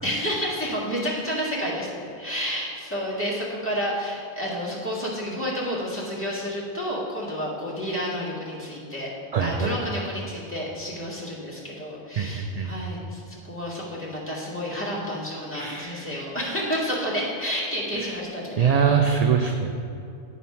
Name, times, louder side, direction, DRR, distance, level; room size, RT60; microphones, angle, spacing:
voice 1, 0.0-9.1 9.4-18.6, equal, 10° left, -8 dB, 1.9 m, -30 dB
voice 2, 9.3-9.7 12.2-12.7 15.5-16.1 17.9-18.2 18.6-19.7, right 6 dB, 55° right, 3 dB, 0.4 m, -23 dB
9.4 x 4.2 x 5.7 m, 2.6 s
omnidirectional pair, 1.1 m